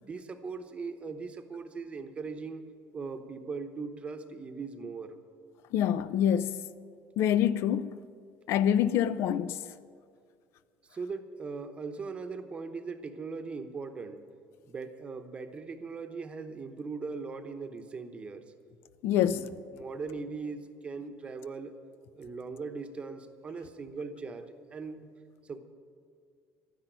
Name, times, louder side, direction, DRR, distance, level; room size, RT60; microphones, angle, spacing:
voice 1, 0.1-2.6 2.9-5.2 10.9-14.2 14.7-18.4 19.3-19.4 19.7-21.7 22.1-25.1 25.4-25.6, right 4 dB, 25° right, 1.0 m, -39 dB
voice 2, 5.7-6.6 7.2-8.0 8.5-9.6 19.0-19.5, left 10 dB, 60° left, 0.6 m, -26 dB
12.0 x 10.5 x 9.1 m
cardioid pair, 145°, 5 cm